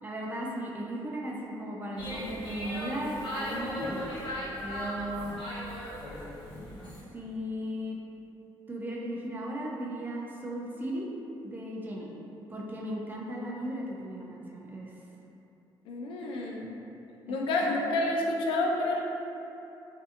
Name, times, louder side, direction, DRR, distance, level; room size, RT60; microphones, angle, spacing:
voice 1, 0.0-4.1 4.6-5.4 7.1-8.0 8.7-11.1 11.4-12.1 12.5-14.9 17.5-17.7, right 1 dB, 20° right, -3 dB, 0.3 m, -36 dB
sound 1, 2.0-7.0, left 1 dB, 65° left, 0.7 m, -37 dB
voice 2, 15.9-16.8 17.3-19.0, left 2 dB, 85° left, -1 dB, 0.4 m, -29 dB
2.6 x 2.4 x 2.4 m, 2.9 s
cardioid pair, 130°, 9 cm